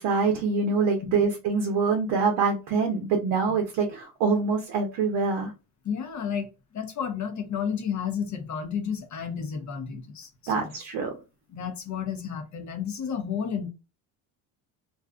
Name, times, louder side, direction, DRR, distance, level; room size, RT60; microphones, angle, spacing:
voice 1, 0.0-5.5 10.5-11.1, right 4 dB, 65° right, 0.7 m, -25 dB
voice 2, 5.8-10.7 11.5-13.7, left 7 dB, 40° left, 0.7 m, -32 dB
2.6 x 2.4 x 2.3 m
supercardioid pair, 80°, 43 cm